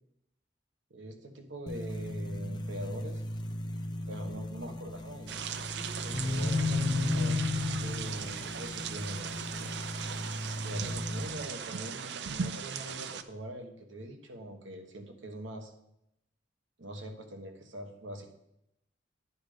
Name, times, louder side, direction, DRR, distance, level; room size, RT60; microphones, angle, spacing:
voice 1, 0.9-3.2 4.1-7.4 7.8-9.7 10.6-15.7 16.8-18.3, right 1 dB, 80° right, 5 dB, 1.2 m, -43 dB
sound 1, 1.7-11.3, left 2 dB, 25° left, 0.4 m, -34 dB
sound 2, 5.3-13.2, right 7 dB, 65° right, 0.5 m, -38 dB
10.0 x 5.1 x 5.0 m, 0.80 s
head